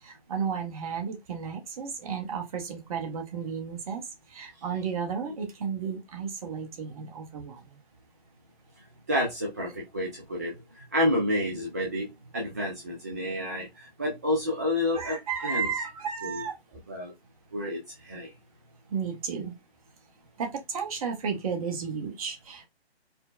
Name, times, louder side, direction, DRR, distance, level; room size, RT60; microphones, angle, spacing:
voice 1, 0.0-7.8 14.9-16.6 18.9-19.5 20.4-22.7, right 6 dB, 35° right, 0.9 m, -33 dB
voice 2, 9.1-10.6 10.9-12.1 12.3-15.2 15.4-15.7 16.2-16.4 16.9-17.1 17.5-18.3, left 1 dB, 15° right, 0.4 m, -29 dB
4.3 x 2.1 x 2.4 m
figure-of-eight pair, 140°, 31 cm